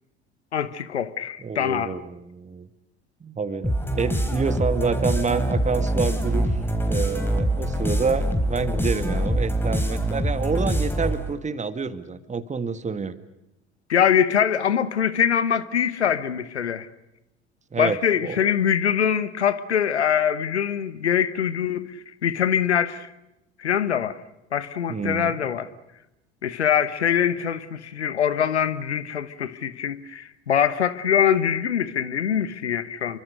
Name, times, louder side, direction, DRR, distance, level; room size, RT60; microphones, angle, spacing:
voice 1, 0.5-2.0 13.9-16.9 17.8-21.9 22.2-23.1 23.6-24.2 24.5-25.7 26.4-33.2, left 8 dB, 80° left, 1.2 m, -23 dB
voice 2, 1.4-2.7 3.2-6.5 6.8-13.2 17.7-18.4 24.9-25.5, right 5 dB, 20° right, 1.9 m, -28 dB
sound 1, 3.6-11.3, right 1 dB, 5° left, 4.3 m, -24 dB
28.5 x 24.5 x 6.6 m
figure-of-eight pair, 65°, 33 cm